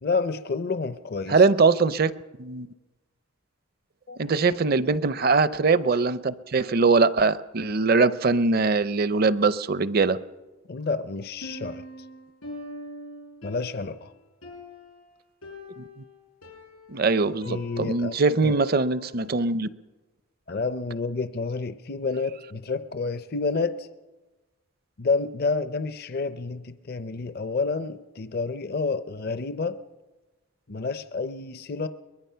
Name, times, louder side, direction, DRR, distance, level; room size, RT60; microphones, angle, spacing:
voice 1, 0.0-1.4 4.1-4.2 10.7-11.8 13.4-14.1 17.5-18.2 18.4-18.5 20.5-23.9 25.0-29.8 30.7-31.9, left 4 dB, 45° left, 12 dB, 0.6 m, -29 dB
voice 2, 1.3-2.1 2.4-2.7 4.2-10.2 15.8-15.9 16.9-19.7, right 4 dB, 45° right, 15 dB, 0.5 m, -22 dB
Piano, 11.4-19.3, left 1 dB, 85° left, 5.2 m, -43 dB
22.5 x 21.0 x 5.6 m, 1.2 s
head